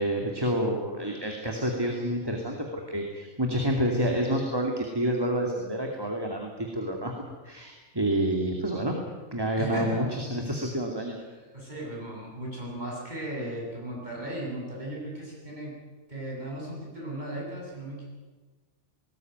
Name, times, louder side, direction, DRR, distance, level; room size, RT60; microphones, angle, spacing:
voice 1, 0.0-7.1 7.4-9.0 9.3-11.2, right 1 dB, 15° right, 1 dB, 2.5 m, -28 dB
voice 2, 9.6-10.1 11.5-15.7 16.1-18.0, right 1 dB, 30° right, -3 dB, 8.1 m, -36 dB
19.5 x 19.0 x 9.4 m, 1.3 s
omnidirectional pair, 1.4 m